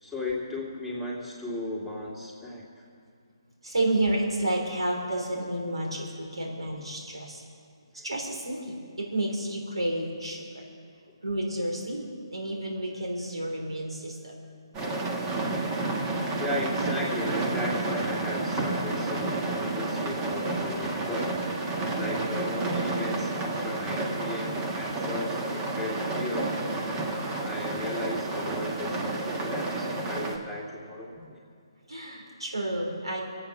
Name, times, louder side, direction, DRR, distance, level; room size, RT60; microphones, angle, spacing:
voice 1, 0.0-2.8 8.0-8.1 16.1-21.4 21.9-26.5 26.9-31.4, left 1 dB, ahead, -6 dB, 2.4 m, -36 dB
voice 2, 3.6-7.4 8.0-10.7 11.2-14.3 31.9-33.2, right 1 dB, 90° right, 0 dB, 3.3 m, -30 dB
sound 1, 14.7-30.4, right 2 dB, 20° right, 1.5 m, -30 dB
24.5 x 8.7 x 6.0 m, 2.2 s
figure-of-eight pair, 145°, 3 cm